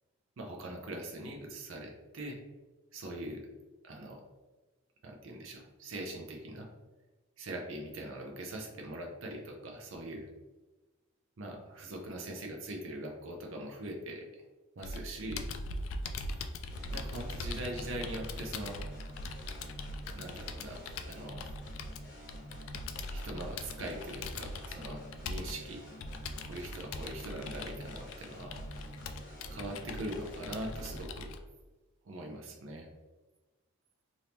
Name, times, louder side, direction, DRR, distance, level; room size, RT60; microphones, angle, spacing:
voice 1, 0.4-2.4 2.9-3.4 3.8-4.2 5.0-6.7 7.4-10.3 11.4-14.3 14.8-15.5 16.9-18.8 20.1-21.5 23.1-25.8 26.4-28.6 29.5-31.3 32.0-32.9, right 1 dB, 65° right, 1 dB, 0.5 m, -42 dB
Computer keyboard, 14.8-31.4, left 2 dB, 70° left, 0.3 m, -41 dB
sound 1, 16.7-31.0, equal, 50° left, 1.3 m, -49 dB
2.8 x 2.7 x 3.4 m, 1.2 s
head